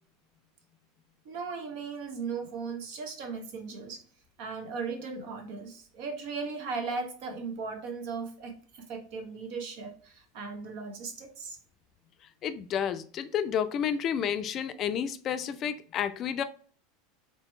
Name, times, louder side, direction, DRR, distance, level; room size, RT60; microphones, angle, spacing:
voice 1, 1.2-4.0 4.4-11.6, right 4 dB, 65° right, 1.0 m, -37 dB
voice 2, 12.4-16.4, left 8 dB, 40° left, 0.4 m, -30 dB
3.3 x 2.9 x 3.1 m
hypercardioid pair, 85°, 0 cm